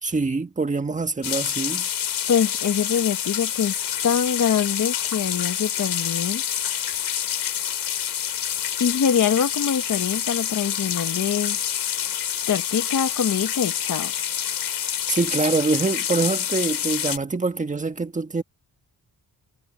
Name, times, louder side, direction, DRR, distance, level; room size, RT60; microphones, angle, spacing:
voice 1, 0.0-1.9 15.1-18.4, right 3 dB, 20° right, 1.5 m, -24 dB
sound 1, 1.2-17.2, left 9 dB, 75° left, 4.8 m, -27 dB
voice 2, 2.3-6.4 8.8-11.6 12.5-14.1, left 8 dB, 50° left, 1.4 m, -24 dB
wide cardioid pair, 150°, 39 cm